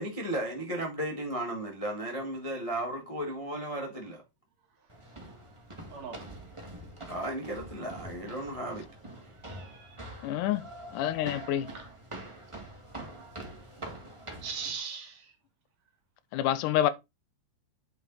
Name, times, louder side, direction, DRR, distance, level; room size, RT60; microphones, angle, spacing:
voice 1, 0.0-4.2 7.1-8.8, right 1 dB, 25° left, 0.7 m, -35 dB
sound 1, 4.9-14.7, right 1 dB, 15° right, 1.0 m, -45 dB
voice 2, 5.9-6.2 9.5-10.3 11.7-11.9 14.4-15.3, right 6 dB, 60° right, 2.8 m, -40 dB
voice 3, 10.2-10.6 10.9-11.7 16.3-16.9, left 12 dB, 80° left, 2.1 m, -27 dB
9.5 x 4.9 x 4.0 m
omnidirectional pair, 3.6 m